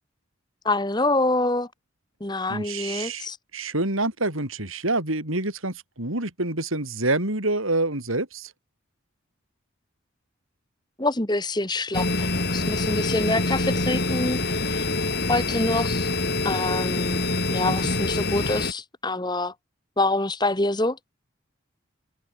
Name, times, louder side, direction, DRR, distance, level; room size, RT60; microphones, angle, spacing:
voice 1, 0.6-1.7 2.2-3.4 11.0-14.4 14.7-14.9 15.3-16.1 16.4-17.2 17.5-19.5 20.0-21.0, left 2 dB, 20° left, 1.7 m, -26 dB
voice 2, 2.5-8.5 17.6-17.7, right 2 dB, 80° right, 6.6 m, -27 dB
sound 1, 11.9-18.7, left 2 dB, 50° left, 3.7 m, -25 dB
head